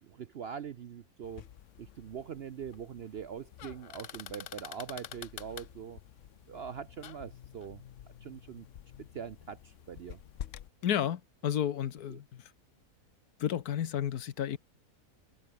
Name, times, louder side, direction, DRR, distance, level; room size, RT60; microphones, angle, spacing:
voice 1, 0.0-1.5 1.8-6.0 6.5-7.8 8.2-8.7 9.1-10.2 12.1-12.2, right 8 dB, 60° right, 0.7 m, -43 dB
sound 1, 1.2-10.7, left 11 dB, 60° left, 1.0 m, -48 dB
voice 2, 10.8-12.2 13.4-14.6, left 10 dB, 75° left, 1.5 m, -31 dB
omnidirectional pair, 1.6 m